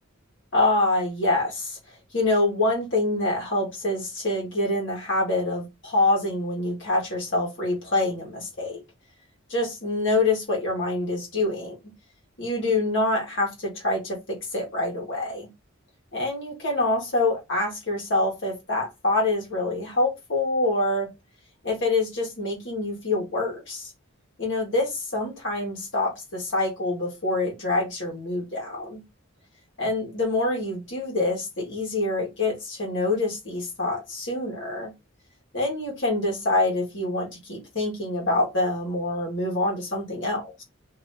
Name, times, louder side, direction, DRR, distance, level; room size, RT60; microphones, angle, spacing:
voice 1, 0.5-1.8 2.1-8.8 9.5-11.8 12.4-15.5 16.1-21.1 21.6-23.9 24.4-29.0 29.8-34.9 35.5-40.6, left 2 dB, 60° left, 1.6 m, -26 dB
3.3 x 3.0 x 2.7 m
head